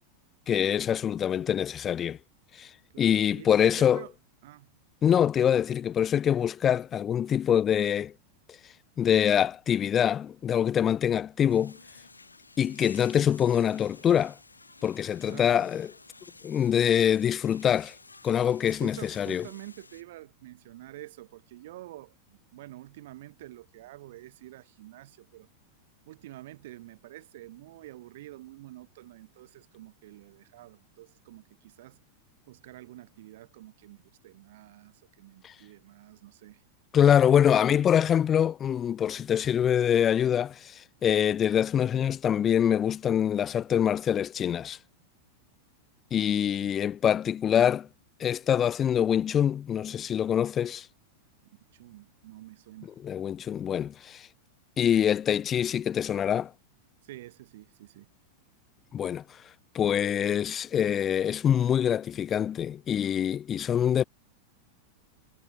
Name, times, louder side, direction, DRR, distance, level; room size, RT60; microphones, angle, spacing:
voice 1, 0.5-2.2 2.6-2.7 3.0-4.0 5.0-8.1 9.0-11.8 12.6-14.4 14.8-15.9 16.4-17.9 18.2-19.4 35.4-35.5 36.9-44.8 46.1-47.9 48.2-50.9 53.0-54.3 54.8-56.5 58.9-59.2 59.7-64.0, left 9 dB, 25° left, 0.3 m, -25 dB
voice 2, 2.9-4.1 4.4-4.7 12.6-12.8 15.2-15.7 18.8-25.5 26.1-32.0 32.5-36.6 37.5-37.9 46.1-46.8 51.7-52.9 57.0-58.1, right 16 dB, 55° right, 1.2 m, -48 dB
sound 1, 11.5-20.0, left 3 dB, 80° left, 1.8 m, -53 dB
figure-of-eight pair, 90°, 0 cm